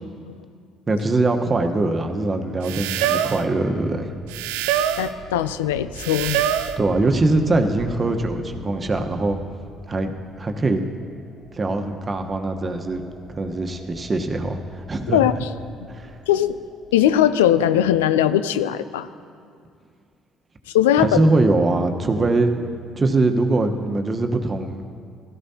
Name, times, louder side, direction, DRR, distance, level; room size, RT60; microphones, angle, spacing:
voice 1, 0.9-4.1 6.8-9.4 9.9-10.1 10.4-10.8 11.5-15.2 15.9-16.1 21.0-22.6 23.0-24.8, right 2 dB, 35° right, 5 dB, 1.1 m, -22 dB
sound 1, 2.6-3.5 4.3-5.1 6.0-6.8, right 10 dB, 80° right, 0.4 m, -24 dB
sound 2, 3.3-17.9, right 1 dB, 15° right, 1.8 m, -44 dB
voice 2, 5.0-6.4 15.1-15.5 16.3-16.6 16.9-19.1 20.7-21.2, left 11 dB, 85° left, 13 dB, 0.4 m, -19 dB
16.5 x 13.0 x 2.9 m, 2.3 s
hypercardioid pair, 55°, 0 cm